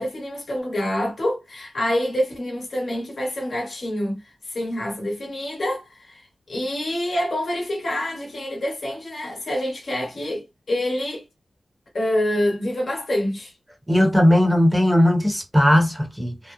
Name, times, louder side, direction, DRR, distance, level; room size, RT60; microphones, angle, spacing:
voice 1, 0.0-11.2 11.9-13.5, left 1 dB, 70° left, 1.1 m, -26 dB
voice 2, 13.9-16.5, left 1 dB, 15° right, 1.0 m, -18 dB
3.0 x 2.0 x 2.4 m
cardioid pair, 40°, 0 cm